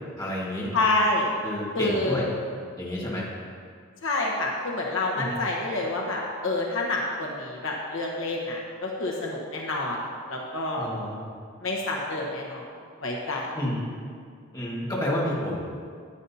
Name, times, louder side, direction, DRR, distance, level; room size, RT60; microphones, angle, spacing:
voice 1, 0.2-0.7 1.4-2.3 2.8-3.3 5.1-5.4 10.8-11.3 13.5-13.9 14.5-15.6, left 1 dB, 20° left, -5 dB, 1.7 m, -30 dB
voice 2, 0.7-1.3 1.7-2.2 4.0-10.9 11.6-12.7 13.0-13.5, left 2 dB, 65° left, -2 dB, 1.1 m, -28 dB
12.0 x 9.1 x 2.8 m, 2.1 s
head